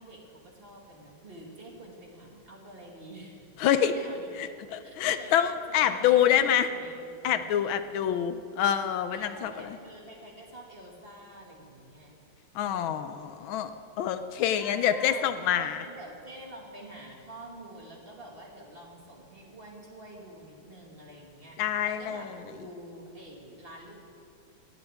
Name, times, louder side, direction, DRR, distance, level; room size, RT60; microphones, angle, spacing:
voice 1, 0.0-4.3 4.8-5.3 5.7-7.7 8.0-8.2 9.1-12.1 12.6-13.3 14.6-24.1, right 1 dB, 30° right, -1 dB, 2.0 m, -47 dB
voice 2, 3.6-3.9 4.4-6.7 7.2-9.5 12.5-13.7 14.0-15.8 21.6-22.2, left 10 dB, 80° left, 11 dB, 1.4 m, -26 dB
18.0 x 16.0 x 3.5 m, 2.5 s
omnidirectional pair, 2.2 m